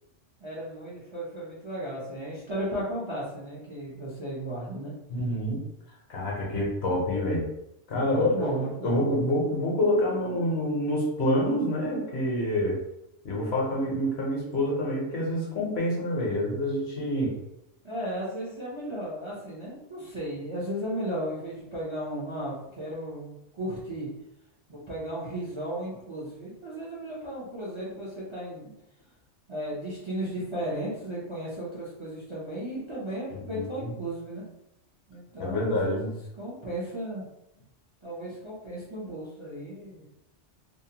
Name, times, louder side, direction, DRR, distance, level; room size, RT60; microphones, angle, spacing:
voice 1, 0.4-4.9 8.0-9.0 17.8-24.1 24.7-28.7 29.5-34.4 35.1-37.2 38.0-40.0, right 1 dB, 35° right, -7 dB, 0.5 m, -35 dB
voice 2, 5.1-5.6 6.1-7.5 7.9-12.8 13.2-17.4 33.5-33.9 35.4-36.1, left 1 dB, 60° left, -3 dB, 1.0 m, -27 dB
2.7 x 2.1 x 2.7 m, 0.86 s
omnidirectional pair, 1.2 m